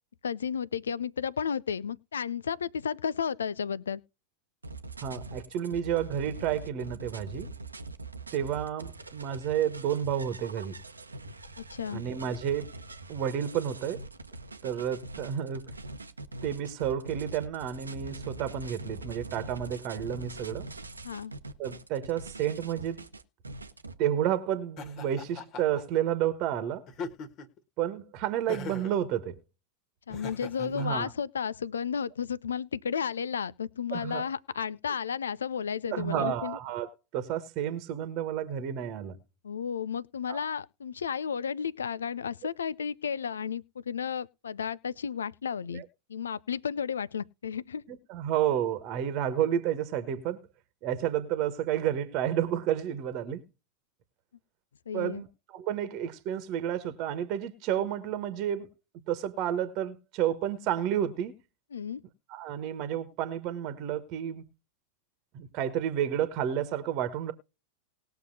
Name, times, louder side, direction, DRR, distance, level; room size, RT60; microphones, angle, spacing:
voice 1, 0.2-4.0 11.6-12.0 21.0-21.3 30.1-36.6 39.4-45.8 46.1-47.8 54.9-55.2 61.7-62.0, left 7 dB, 70° left, 0.5 m, -33 dB
sound 1, 4.6-23.9, right 2 dB, 80° right, 0.9 m, -43 dB
voice 2, 5.0-7.5 8.3-10.7 11.9-12.7 13.1-14.0 14.6-15.7 16.4-20.7 21.6-23.1 24.0-26.9 27.8-29.4 30.6-31.1 33.9-34.2 35.9-39.2 40.3-40.4 45.7-45.8 47.9-50.5 50.8-53.4 54.9-58.7 59.1-61.3 62.3-64.5 65.3-67.3, right 10 dB, 40° right, 1.3 m, -31 dB
Laughter, 24.8-25.8 26.9-27.6 28.5-29.0 30.1-30.9, left 4 dB, 35° left, 1.7 m, -40 dB
20.0 x 6.6 x 2.7 m
figure-of-eight pair, 90°, 0 cm